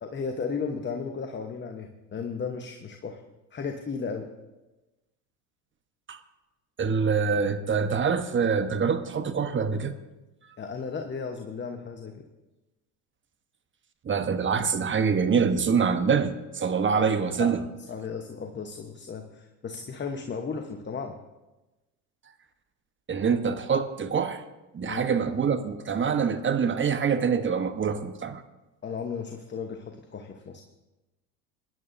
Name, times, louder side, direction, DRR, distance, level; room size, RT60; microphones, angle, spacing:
voice 1, 0.0-3.2 3.5-4.3 10.6-12.3 17.4-17.5 17.9-21.2 24.8-25.1 28.8-30.6, left 5 dB, 25° left, 1.0 m, -35 dB
voice 2, 6.8-9.9 14.0-17.6 23.1-24.4 24.7-28.4, right 6 dB, 25° right, 1.1 m, -25 dB
21.0 x 11.0 x 2.6 m
hypercardioid pair, 85°, 47 cm